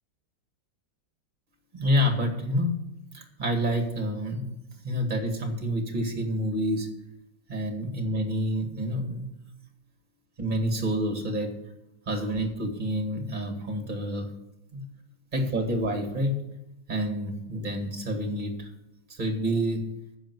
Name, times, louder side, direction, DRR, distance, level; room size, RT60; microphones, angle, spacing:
voice 1, 1.7-2.8 3.1-4.6 4.8-6.9 7.5-9.3 10.4-11.5 12.1-14.3 14.7-14.8 15.3-16.4 16.9-18.7 19.1-19.8, equal, 25° right, 4 dB, 2.1 m, -28 dB
10.5 x 7.2 x 8.2 m, 0.90 s
omnidirectional pair, 2.0 m